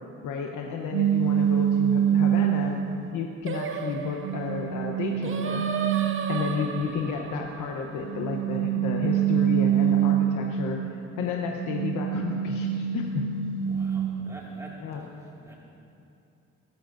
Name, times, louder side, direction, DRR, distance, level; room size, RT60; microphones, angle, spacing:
voice 1, 0.2-2.8 3.1-5.6 6.3-13.2 14.8-15.0, left 6 dB, 80° left, 1 dB, 1.0 m, -32 dB
sound 1, 0.9-3.1 3.7-6.9 8.0-11.0 11.4-14.4, right 10 dB, 90° right, 0.5 m, -26 dB
Singing, 3.5-8.8, right 6 dB, 45° right, 0.9 m, -35 dB
voice 2, 13.7-15.5, right 1 dB, 10° right, -4 dB, 2.2 m, -47 dB
19.5 x 13.0 x 2.6 m, 2.7 s
cardioid pair, 90°, 30 cm